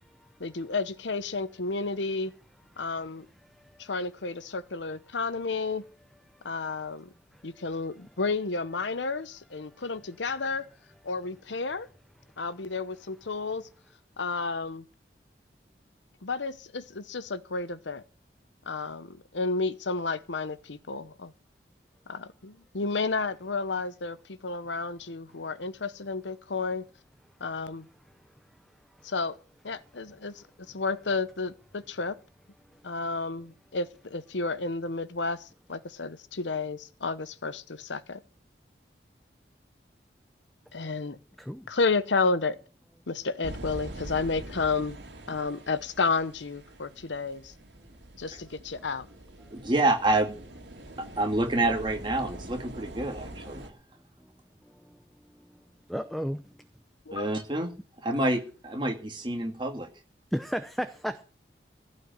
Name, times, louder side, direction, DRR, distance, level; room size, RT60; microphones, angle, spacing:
voice 1, 0.4-2.3 2.8-3.3 3.8-5.8 6.4-7.1 7.4-10.6 11.0-11.9 12.4-13.7 14.2-14.8 16.2-18.0 18.7-21.3 22.1-26.8 27.4-27.8 29.0-29.4 29.6-32.2 32.8-38.2 40.7-41.2 41.7-42.6 43.1-45.0 45.3-47.5 48.2-49.1 57.1-57.3, left 4 dB, 85° left, 0.9 m, -31 dB
sound 1, 43.4-53.7, right 1 dB, 75° right, 2.5 m, -44 dB
voice 2, 49.5-50.4 51.2-53.7 57.1-57.7 58.0-59.9, right 2 dB, 25° right, 2.2 m, -27 dB
voice 3, 55.9-56.4 60.3-61.2, equal, ahead, 0.6 m, -32 dB
15.5 x 5.5 x 9.2 m
head